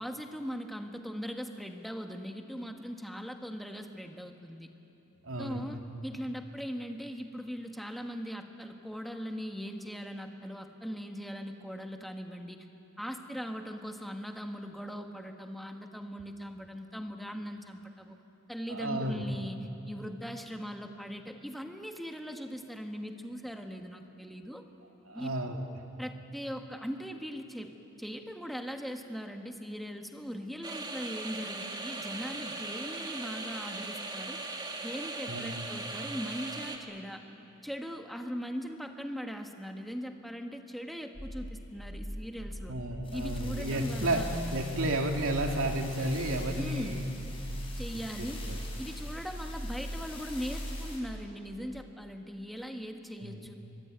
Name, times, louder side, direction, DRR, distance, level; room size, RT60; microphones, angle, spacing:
voice 1, 0.0-4.7 5.4-12.7 13.0-18.2 18.5-24.6 25.1-25.3 26.0-27.7 28.0-34.4 34.8-37.2 37.6-42.7 43.1-44.3 46.6-47.1 47.8-48.4 48.8-53.5, equal, ahead, 4 dB, 1.5 m, -40 dB
voice 2, 5.2-5.8 18.7-19.2 25.1-25.6 35.3-35.7 42.7-44.2 44.5-47.1 48.2-48.6 53.2-53.5, right 1 dB, 90° right, 2 dB, 2.6 m, -32 dB
sound 1, 30.6-36.8, right 3 dB, 20° right, 2.0 m, -39 dB
sound 2, 41.1-51.0, equal, 25° left, 5.9 m, -39 dB
24.0 x 21.5 x 9.2 m, 2.9 s
head